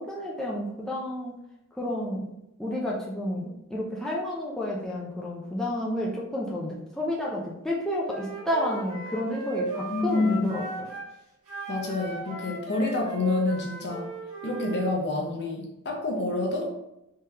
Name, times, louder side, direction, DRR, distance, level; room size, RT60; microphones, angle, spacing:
voice 1, 0.0-1.3 1.8-2.3 2.6-10.9, left 1 dB, ahead, -5 dB, 0.5 m, -30 dB
Wind instrument woodwind instrument, 8.1-11.1 11.5-14.9, right 3 dB, 75° right, 1.5 m, -36 dB
voice 2, 9.9-10.6 11.7-14.1 14.4-16.7, left 3 dB, 50° left, 0 dB, 0.8 m, -28 dB
3.7 x 3.3 x 2.8 m, 0.87 s
head